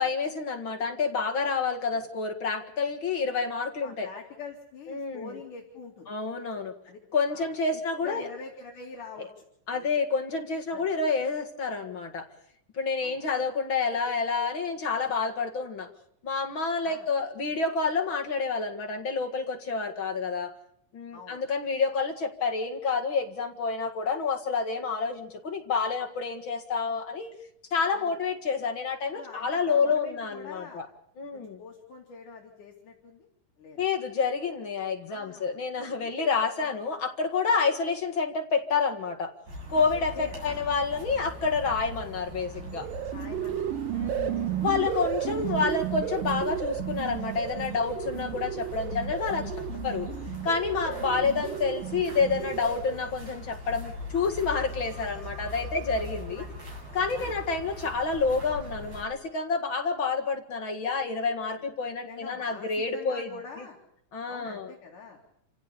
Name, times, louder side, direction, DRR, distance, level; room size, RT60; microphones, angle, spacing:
voice 1, 0.0-4.1 4.9-5.3 6.1-6.7 7.1-8.3 9.7-12.3 12.7-15.9 16.2-20.5 20.9-27.3 27.7-30.9 31.2-31.6 33.8-39.3 39.7-42.9 43.9-49.5 49.8-50.1 50.4-56.4 56.9-63.3 64.1-64.7, left 4 dB, 40° left, 4 dB, 2.2 m, -28 dB
voice 2, 3.8-6.1 6.8-7.0 7.3-9.4 9.7-9.9 10.7-10.9 13.0-13.2 16.8-17.1 21.1-21.5 27.9-28.2 29.1-30.8 31.3-33.3 33.6-33.8 35.1-36.2 36.6-36.8 39.7-40.7 43.1-44.8 45.6-45.7 50.9-51.2 54.1-54.3 56.4-56.6 57.1-57.3 62.0-63.8 64.3-65.2, left 4 dB, 65° left, -1 dB, 4.1 m, -45 dB
sound 1, 39.5-59.0, left 1 dB, 50° right, 8.9 m, -41 dB
sound 2, 42.6-53.1, right 11 dB, 80° right, 2.8 m, -33 dB
28.0 x 16.5 x 6.9 m, 0.75 s
omnidirectional pair, 3.9 m